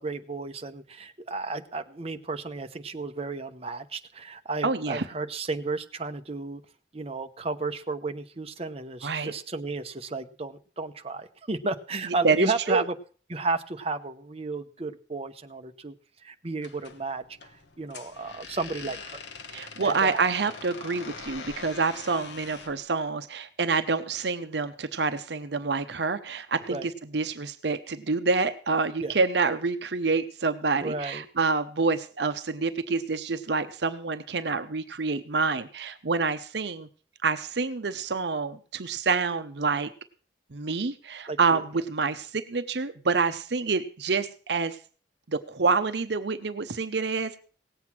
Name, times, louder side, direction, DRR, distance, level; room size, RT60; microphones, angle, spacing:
voice 1, 0.0-6.6 6.9-12.9 13.3-15.9 16.2-17.2 17.8-19.2 19.6-20.2 26.7-26.9 29.0-29.1 30.8-31.3 41.3-41.6, right 3 dB, 35° right, 8 dB, 0.9 m, -33 dB
voice 2, 4.6-5.1 9.0-9.3 12.2-12.8 19.5-36.9 37.2-39.9 40.5-44.8 45.3-47.4, right 4 dB, 65° right, 11 dB, 0.8 m, -27 dB
sound 1, 16.6-22.8, left 4 dB, 70° left, 1.3 m, -43 dB
18.0 x 7.9 x 6.0 m, 0.41 s
head